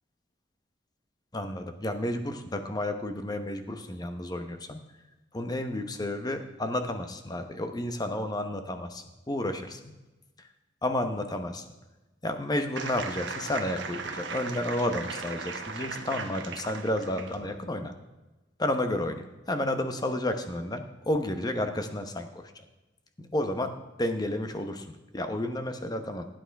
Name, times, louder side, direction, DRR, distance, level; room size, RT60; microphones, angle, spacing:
voice 1, 1.3-4.8 5.3-9.9 10.8-11.6 12.2-17.9 18.6-22.5 23.2-23.7 24.0-26.3, left 1 dB, 20° left, 7 dB, 0.9 m, -31 dB
sound 1, 12.8-17.5, right 4 dB, 85° right, 1.2 m, -37 dB
16.0 x 9.0 x 3.5 m, 1.1 s
head